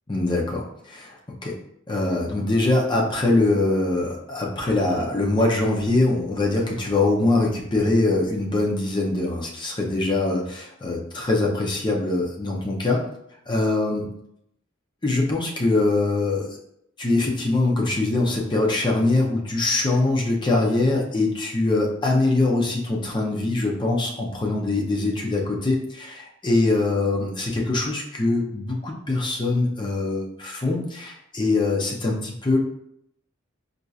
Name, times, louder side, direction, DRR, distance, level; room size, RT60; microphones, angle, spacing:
voice 1, 0.1-1.6 1.9-13.0 13.5-14.1 15.0-16.6 17.0-32.6, left 2 dB, 20° left, -1 dB, 0.6 m, -23 dB
4.3 x 2.6 x 2.4 m, 0.75 s
head